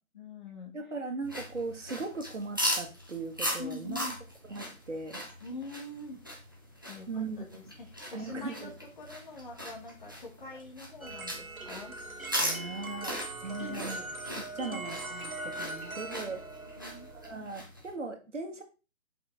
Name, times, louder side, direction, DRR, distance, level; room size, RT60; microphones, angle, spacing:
voice 1, 0.1-0.7 3.6-4.2 5.4-6.2 6.8-12.2 13.6-13.9 14.7-14.8 15.6-15.8 16.2-16.4 16.7-17.1, left 3 dB, 35° left, 0 dB, 1.7 m, -44 dB
voice 2, 0.7-4.0 4.5-5.2 7.1-7.6 8.1-8.7 12.4-14.0 14.4-16.4 17.2-18.6, right 3 dB, 60° right, 5 dB, 1.7 m, -38 dB
sound 1, 1.2-17.9, equal, 15° right, 0.6 m, -39 dB
sound 2, 11.0-17.4, right 2 dB, 80° right, 1.6 m, -41 dB
7.1 x 5.4 x 3.4 m, 0.32 s
figure-of-eight pair, 145°, 42 cm